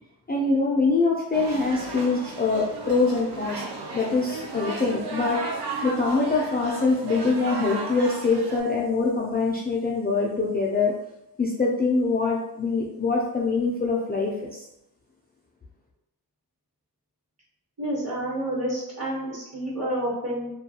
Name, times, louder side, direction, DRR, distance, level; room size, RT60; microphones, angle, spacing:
voice 1, 0.3-5.4 5.8-10.9 11.4-14.6, left 3 dB, 25° left, -4 dB, 0.4 m, -24 dB
sound 1, 1.3-8.6, right 3 dB, 80° right, 0.6 m, -34 dB
voice 2, 17.8-20.5, right 1 dB, 40° right, -5 dB, 1.1 m, -29 dB
2.3 x 2.3 x 2.8 m, 0.85 s
wide cardioid pair, 85°, 40 cm